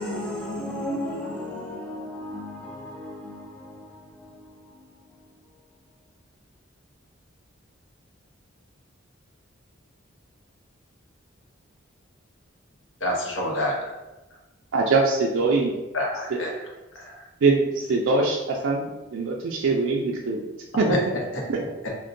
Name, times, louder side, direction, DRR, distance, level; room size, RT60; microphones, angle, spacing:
voice 1, 0.0-3.8, left 1 dB, 5° left, 0.6 m, -33 dB
voice 2, 13.0-13.9 15.9-16.6 16.9-17.2 20.9-21.0 21.3-21.4, left 1 dB, 65° left, 0.8 m, -27 dB
voice 3, 14.7-15.7 17.4-20.9 21.5-21.6, right 3 dB, 70° right, 0.4 m, -23 dB
3.7 x 2.1 x 2.5 m
head